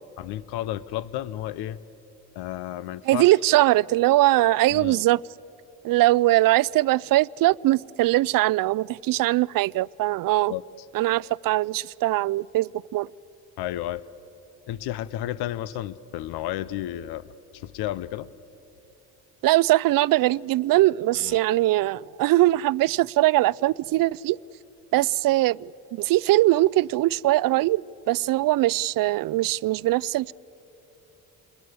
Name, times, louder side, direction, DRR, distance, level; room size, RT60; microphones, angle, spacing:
voice 1, 0.2-1.8 2.3-3.3 4.7-5.0 10.5-10.6 13.6-14.1 14.7-18.3 21.1-21.4, left 13 dB, 80° left, 0.7 m, -32 dB
voice 2, 3.1-5.2 5.8-10.5 10.9-13.1 19.4-24.4 24.9-30.3, right 17 dB, 60° right, 0.5 m, -21 dB
27.5 x 21.5 x 8.0 m
supercardioid pair, 70°, 38 cm